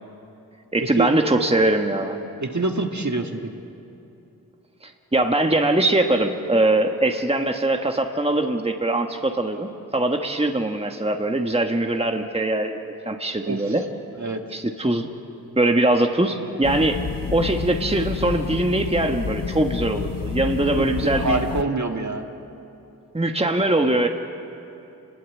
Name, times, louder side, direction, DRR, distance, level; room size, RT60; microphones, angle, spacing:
voice 1, 0.7-2.2 4.8-13.8 14.5-15.1 15.6-17.0 17.3-21.4 23.1-24.1, right 2 dB, 15° right, 4 dB, 1.5 m, -22 dB
voice 2, 2.4-3.5 13.5-13.7 14.2-14.4 20.8-22.2, right 2 dB, 50° right, 3 dB, 2.0 m, -26 dB
sound 1, 16.6-21.6, left 6 dB, 60° left, 0.9 m, -29 dB
27.0 x 21.0 x 8.5 m, 2.8 s
wide cardioid pair, 55°, 37 cm